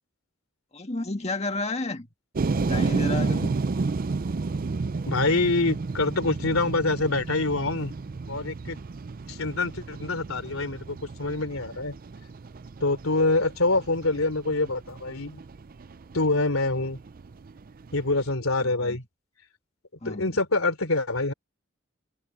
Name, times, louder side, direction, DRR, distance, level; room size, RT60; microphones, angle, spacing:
voice 1, 0.7-2.1 2.6-3.6 18.6-19.0 20.0-20.3, left 2 dB, 30° left, 1.8 m, -31 dB
sound 1, 2.4-18.3, right 3 dB, 45° right, 0.5 m, -32 dB
voice 2, 5.1-7.9 8.3-8.8 9.3-11.9 12.8-15.4 16.1-17.0 17.9-19.0 20.0-21.3, left 2 dB, 90° left, 3.3 m, -25 dB
head